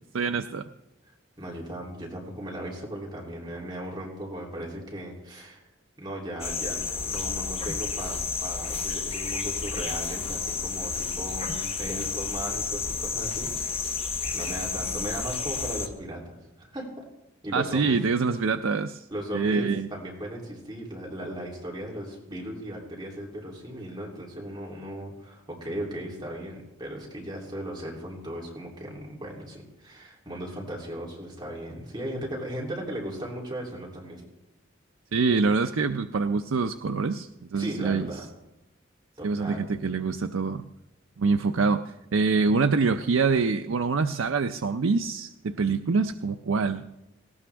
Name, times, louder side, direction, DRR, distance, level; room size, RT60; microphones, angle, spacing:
voice 1, 0.1-0.6 17.5-19.0 19.3-19.9 35.1-38.1 39.2-40.7 41.2-41.8 42.1-46.8, right 4 dB, 80° right, 7 dB, 0.5 m, -25 dB
voice 2, 1.4-5.6 6.0-13.9 14.3-17.0 17.4-18.0 19.1-34.2 37.5-38.3 39.2-39.7, right 1 dB, 20° right, -3 dB, 3.1 m, -37 dB
sound 1, 6.4-15.9, left 5 dB, 30° left, 1.0 m, -31 dB
18.5 x 17.5 x 3.5 m, 0.95 s
head